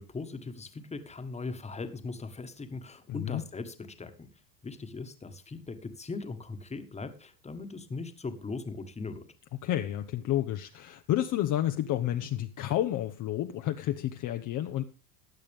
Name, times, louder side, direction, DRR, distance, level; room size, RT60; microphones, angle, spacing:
voice 1, 0.0-4.3 4.6-9.3, left 3 dB, 15° left, 9 dB, 1.5 m, -39 dB
voice 2, 3.1-3.4 9.6-14.8, left 12 dB, 40° left, 7 dB, 0.9 m, -30 dB
16.0 x 10.0 x 3.5 m, 0.32 s
supercardioid pair, 120°, 49 cm